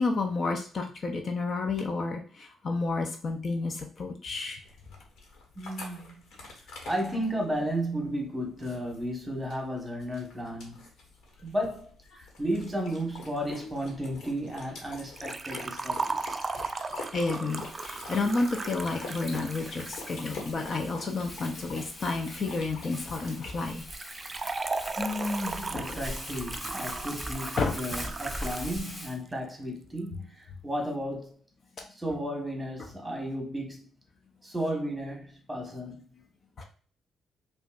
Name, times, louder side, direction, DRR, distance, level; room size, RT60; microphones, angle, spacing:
voice 1, 0.0-4.6 17.1-23.8 25.7-26.0 27.6-27.7 36.6-36.7, left 3 dB, 45° left, 0.6 m, -30 dB
sound 1, 4.6-23.7, left 3 dB, 75° left, 1.4 m, -46 dB
voice 2, 5.5-6.1 6.8-10.9 11.4-16.6 18.2-18.3 25.0-31.4 31.9-33.9 34.4-36.2, equal, 10° right, 1.3 m, -34 dB
Liquid, 15.2-20.1 23.9-28.7 29.0-29.1 30.0-30.1, right 3 dB, 30° right, 0.3 m, -36 dB
Crumpling crinkling, 17.5-29.2, equal, 15° left, 1.4 m, -42 dB
5.0 x 2.5 x 2.4 m
cardioid pair, 90°, 0 cm